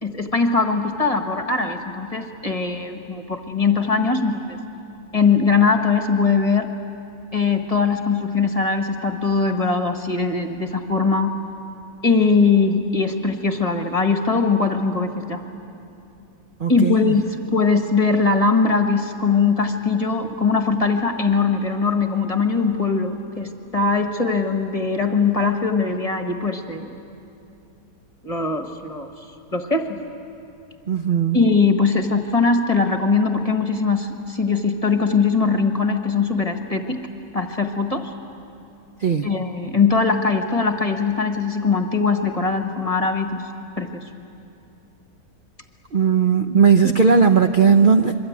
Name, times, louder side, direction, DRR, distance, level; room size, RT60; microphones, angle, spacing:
voice 1, 0.0-4.6 5.1-6.7 7.3-11.4 12.0-15.4 16.7-26.9 28.2-29.1 29.5-30.0 31.3-37.0 37.3-38.1 39.2-43.4 43.8-44.0 46.8-46.9, left 4 dB, 20° left, 5 dB, 1.3 m, -21 dB
voice 2, 16.6-17.1 30.9-31.4 39.0-39.3 45.9-48.1, right 6 dB, 45° right, 6 dB, 0.6 m, -17 dB
26.0 x 23.0 x 9.4 m, 2.8 s
omnidirectional pair, 1.8 m